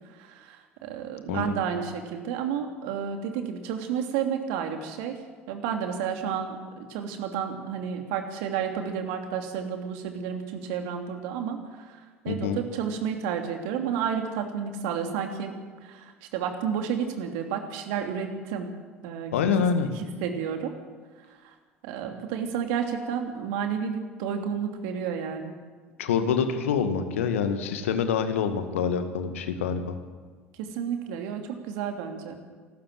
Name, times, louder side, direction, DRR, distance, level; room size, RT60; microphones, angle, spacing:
voice 1, 0.2-5.1 5.5-12.0 12.2-15.5 15.8-18.7 19.0-19.5 19.9-20.7 21.4-21.5 21.8-25.5 30.6-32.4, right 7 dB, 65° right, 5 dB, 2.8 m, -31 dB
voice 2, 12.3-12.6 19.3-19.9 26.0-29.9, left 6 dB, 75° left, 8 dB, 1.9 m, -26 dB
27.5 x 13.0 x 7.6 m, 1.5 s
figure-of-eight pair, 65°, 7 cm